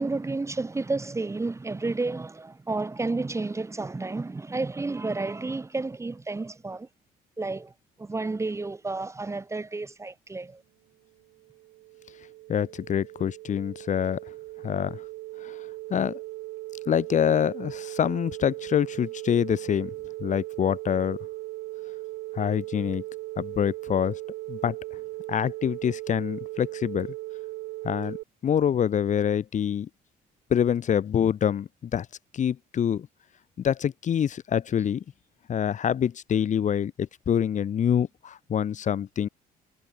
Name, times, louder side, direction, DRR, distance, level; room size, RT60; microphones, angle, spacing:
voice 1, 0.0-6.9 7.4-7.7 8.0-10.6, right 3 dB, 15° right, 2.1 m, -31 dB
sound 1, 11.2-28.2, right 19 dB, 85° right, 3.5 m, -38 dB
voice 2, 12.5-14.2 14.6-15.0 15.4-15.5 15.9-16.2 16.9-19.9 20.2-21.2 22.4-23.0 23.4-24.1 24.5-24.8 25.3-27.1 27.8-28.2 28.4-29.9 30.5-32.1 32.3-33.1 33.6-35.0 35.5-39.3, left 8 dB, 45° left, 2.4 m, -26 dB
cardioid pair, 110°, 17 cm